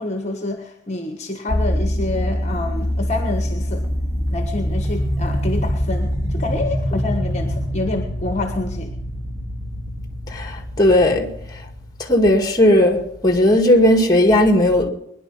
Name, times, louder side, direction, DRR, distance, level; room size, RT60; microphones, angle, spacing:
voice 1, 0.0-3.8 4.3-8.9, left 2 dB, 40° left, 1.4 m, -27 dB
sound 1, 1.5-12.9, equal, 15° right, 3.7 m, -24 dB
voice 2, 10.3-11.3 12.0-14.9, left 1 dB, 20° left, 2.0 m, -16 dB
21.5 x 11.0 x 5.5 m
head